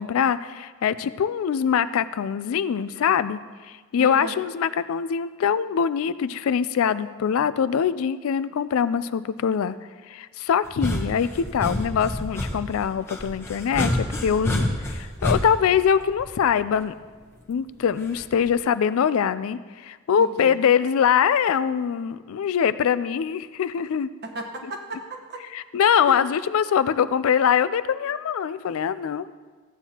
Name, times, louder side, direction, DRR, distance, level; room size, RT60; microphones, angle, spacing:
voice 1, 0.0-9.8 10.1-13.9 14.2-16.9 17.5-24.1 25.5-29.3, left 7 dB, 70° left, 14 dB, 0.3 m, -23 dB
voice 2, 4.0-4.4 20.2-20.5 24.2-25.4 26.1-26.2, right 1 dB, 45° right, 3 dB, 1.1 m, -35 dB
sound 1, 10.6-16.7 18.1-18.5, left 1 dB, 10° left, 0.8 m, -28 dB
14.0 x 9.0 x 2.9 m, 1.4 s
head